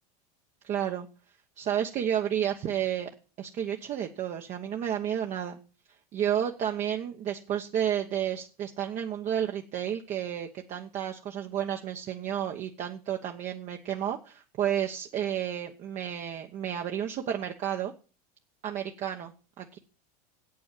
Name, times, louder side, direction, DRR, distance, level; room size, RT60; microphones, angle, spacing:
voice 1, 0.6-1.1 1.6-3.1 3.4-5.6 6.1-17.9 18.6-19.8, right 10 dB, 35° right, 2 dB, 1.1 m, -31 dB
8.6 x 8.3 x 7.6 m, 0.36 s
supercardioid pair, 140°, 21 cm